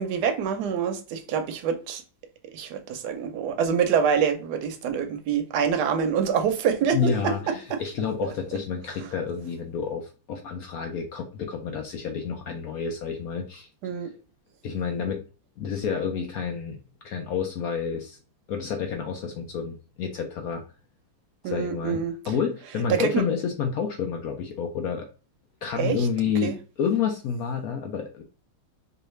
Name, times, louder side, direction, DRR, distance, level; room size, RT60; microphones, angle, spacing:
voice 1, 0.0-2.0 2.5-7.8 8.2-8.3 9.0-9.1 13.8-14.1 21.4-22.1 22.9-23.2 25.8-26.1 26.4-26.6, right 7 dB, 65° right, 1.1 m, -26 dB
voice 2, 6.9-13.7 14.0-14.1 14.6-15.2 15.6-16.8 17.0-18.2 18.5-20.6 21.4-22.0 22.3-25.1 25.6-26.5 26.8-28.2, left 6 dB, 70° left, 0.8 m, -29 dB
4.7 x 2.5 x 3.1 m
omnidirectional pair, 2.1 m